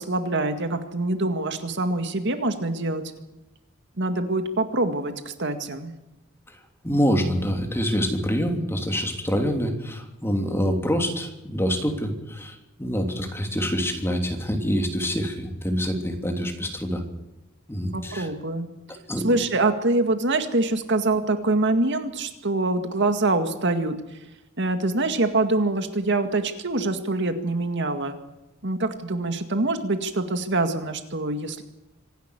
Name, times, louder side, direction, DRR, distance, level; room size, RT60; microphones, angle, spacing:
voice 1, 0.0-3.0 4.0-5.9 17.9-18.7 19.2-23.9 24.6-28.2 28.6-31.6, right 2 dB, 60° right, 7 dB, 2.0 m, -25 dB
voice 2, 6.8-17.0 17.7-18.3 19.1-19.4, equal, 10° left, 4 dB, 3.1 m, -26 dB
25.5 x 11.5 x 9.9 m, 0.99 s
head